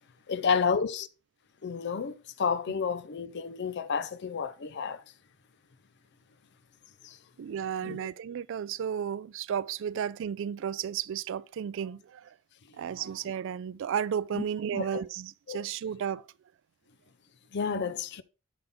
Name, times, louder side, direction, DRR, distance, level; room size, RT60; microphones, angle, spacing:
voice 1, 0.3-1.1 1.6-5.0 7.0-7.2 7.8-8.0 14.3-14.4 14.7-15.0 15.5-15.6 17.5-18.2, left 6 dB, 55° left, 0.5 m, -30 dB
voice 2, 7.4-12.3 12.7-16.3 17.7-17.8, right 8 dB, 60° right, 0.3 m, -33 dB
7.8 x 5.6 x 3.5 m
head